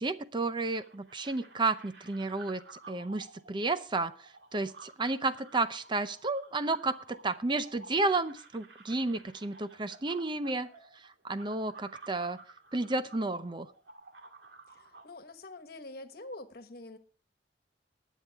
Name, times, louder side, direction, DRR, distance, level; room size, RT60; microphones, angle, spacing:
voice 1, 0.0-4.1 4.5-10.7 11.2-12.4 12.7-13.7, right 3 dB, 25° right, 0.6 m, -32 dB
sound 1, 0.7-15.1, right 3 dB, 80° right, 2.2 m, -53 dB
voice 2, 14.7-17.0, left 2 dB, 60° left, 1.3 m, -46 dB
20.0 x 8.4 x 3.5 m
head